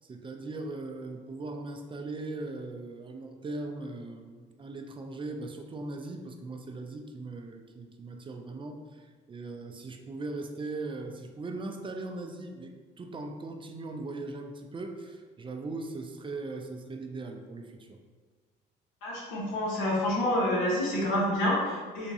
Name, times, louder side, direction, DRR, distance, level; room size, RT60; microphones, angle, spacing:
voice 1, 0.0-12.7 13.0-18.0, right 2 dB, 25° right, 3 dB, 0.4 m, -39 dB
voice 2, 19.0-22.1, left 1 dB, 90° left, -4 dB, 1.0 m, -28 dB
3.5 x 2.9 x 2.7 m, 1.5 s
supercardioid pair, 80°, 19 cm